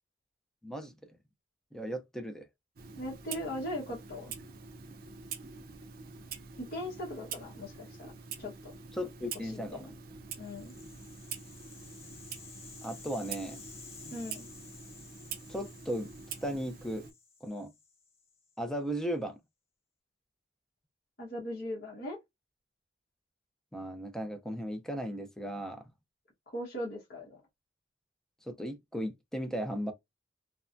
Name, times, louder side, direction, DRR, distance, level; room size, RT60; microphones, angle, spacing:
voice 1, 0.6-0.9 1.7-2.5 8.9-9.9 12.8-13.6 15.5-16.1 16.4-17.1 17.4-17.7 18.6-19.3 23.7-25.8 28.4-29.9, equal, 5° left, 0.5 m, -36 dB
Clock, 2.8-17.1, right 6 dB, 55° right, 0.5 m, -46 dB
voice 2, 3.0-4.3 6.6-8.1 8.4-8.7 9.5-9.9 10.4-10.7 14.1-14.5 21.2-22.2 26.5-27.4, left 1 dB, 55° left, 1.2 m, -39 dB
Rattle (instrument), 10.4-18.6, left 5 dB, 35° left, 0.8 m, -53 dB
3.2 x 2.1 x 2.5 m
head